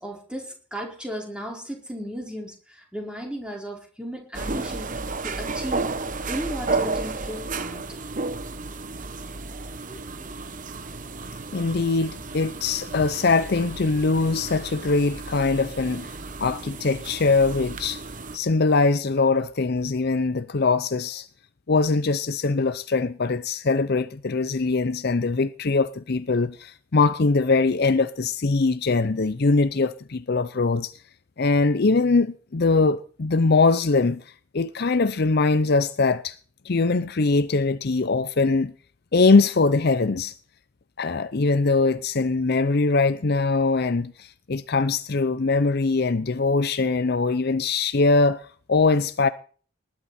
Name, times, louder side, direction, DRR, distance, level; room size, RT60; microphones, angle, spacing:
voice 1, 0.0-4.9 5.2-5.9 6.3-7.8 9.9-10.3, equal, 5° right, 4.6 m, -35 dB
sound 1, 4.3-18.4, right 3 dB, 40° right, 1.0 m, -33 dB
voice 2, 11.5-18.0 18.3-21.3 21.7-30.9 31.4-34.2 34.5-36.4 36.6-38.7 39.1-40.3 41.0-49.3, left 3 dB, 45° left, 0.6 m, -22 dB
19.5 x 11.5 x 4.3 m
head